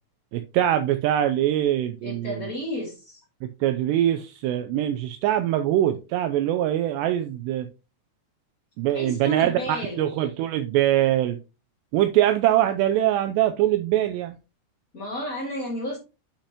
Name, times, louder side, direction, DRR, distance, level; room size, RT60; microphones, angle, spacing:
voice 1, 0.3-2.5 3.4-7.7 8.8-11.4 11.9-14.4, right 12 dB, 85° right, 2.6 m, -23 dB
voice 2, 2.0-3.2 8.9-10.0 14.9-16.0, left 1 dB, 45° left, 1.0 m, -32 dB
8.4 x 5.8 x 2.9 m
omnidirectional pair, 5.2 m